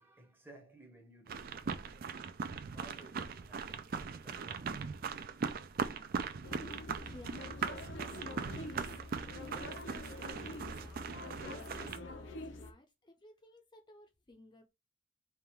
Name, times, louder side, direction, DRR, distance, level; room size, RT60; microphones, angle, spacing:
voice 1, 0.0-2.1 2.6-5.2, right 2 dB, 10° right, 0.8 m, -59 dB
sound 1, 1.3-12.0, right 5 dB, 50° right, 0.4 m, -40 dB
sound 2, 6.4-12.7, left 2 dB, 80° left, 0.7 m, -46 dB
voice 2, 7.0-7.6 8.0-14.7, left 1 dB, 25° left, 0.6 m, -58 dB
3.5 x 2.4 x 4.4 m
head